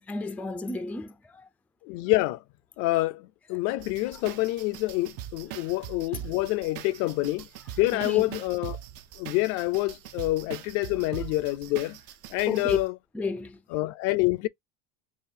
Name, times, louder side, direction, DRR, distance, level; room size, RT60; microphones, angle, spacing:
voice 1, 0.0-1.5 3.5-3.6 7.9-8.4 12.5-12.8 13.1-13.6, left 3 dB, 5° left, 0.4 m, -33 dB
voice 2, 1.8-2.4 2.8-7.5 7.8-8.8 9.2-12.0 12.3-12.9 13.7-14.5, left 19 dB, 60° left, 0.5 m, -27 dB
sound 1, 3.8-12.9, right 12 dB, 55° right, 0.6 m, -41 dB
4.9 x 2.3 x 2.6 m
supercardioid pair, 105°, 29 cm